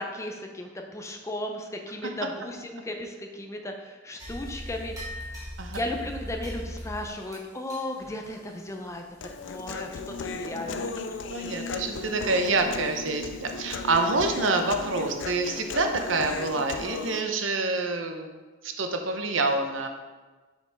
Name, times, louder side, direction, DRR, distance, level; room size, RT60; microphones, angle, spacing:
voice 1, 0.0-5.4 5.7-9.0 9.4-10.9, left 1 dB, 15° left, 3 dB, 0.5 m, -35 dB
sound 1, 4.2-10.8 11.1-11.2 11.8-12.0 12.5-12.8 13.1-13.2 13.8-13.9 16.3-16.4 17.0-17.1, equal, 15° right, 1.5 m, -41 dB
Human voice, 9.2-17.2, left 4 dB, 65° left, 0.4 m, -36 dB
voice 2, 10.3-18.3 18.6-19.9, right 3 dB, 75° right, 5 dB, 0.7 m, -27 dB
6.9 x 5.3 x 3.5 m, 1.3 s
head